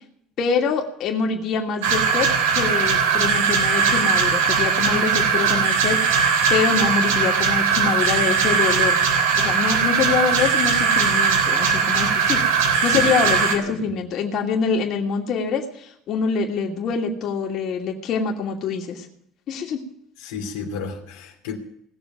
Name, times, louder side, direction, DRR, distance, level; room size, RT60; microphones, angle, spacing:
voice 1, 0.4-9.0 9.4-12.4 12.8-19.1 19.5-19.8, left 5 dB, 55° left, 0 dB, 2.7 m, -25 dB
sound 1, 1.8-13.5, right 6 dB, 80° right, 2.9 m, -19 dB
voice 2, 13.5-13.9 20.2-21.6, left 6 dB, 75° left, 1 dB, 2.5 m, -32 dB
18.5 x 7.0 x 9.3 m, 0.74 s
hypercardioid pair, 70°, 0 cm